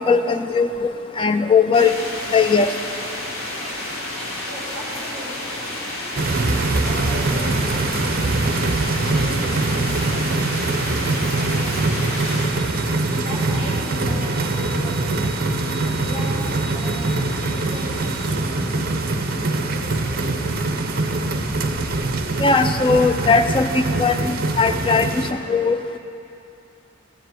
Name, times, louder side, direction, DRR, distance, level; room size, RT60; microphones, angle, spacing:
voice 1, 0.1-0.9 1.2-1.9 2.3-2.7 22.4-25.2 25.5-25.8, left 4 dB, 25° left, 9 dB, 0.4 m, -18 dB
sound 1, 1.7-12.5, left 1 dB, 85° left, 1.9 m, -31 dB
voice 2, 4.5-10.6 11.0-11.9 13.1-15.4 15.9-18.4 19.7-20.4, equal, 55° left, -7 dB, 2.5 m, -37 dB
sound 2, 6.2-25.3, right 2 dB, 45° right, 0.6 m, -23 dB
Engine / Drill, 12.0-19.3, right 2 dB, 5° left, 1.0 m, -40 dB
14.5 x 5.0 x 7.9 m, 2.7 s
head